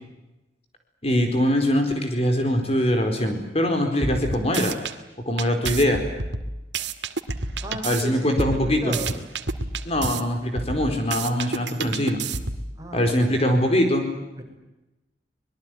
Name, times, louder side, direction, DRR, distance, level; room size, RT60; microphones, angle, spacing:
voice 1, 1.0-4.8 5.3-6.0 7.8-9.0 9.8-12.2 12.9-14.1, equal, 35° left, 5 dB, 4.5 m, -22 dB
sound 1, 4.0-4.9 5.4-8.0 8.4-10.2 10.6-12.7, right 3 dB, 75° right, 2.1 m, -29 dB
voice 2, 7.6-9.1 12.8-13.7 14.4-14.5, right 1 dB, 20° right, 2 dB, 6.2 m, -35 dB
25.5 x 21.5 x 9.4 m, 0.98 s
head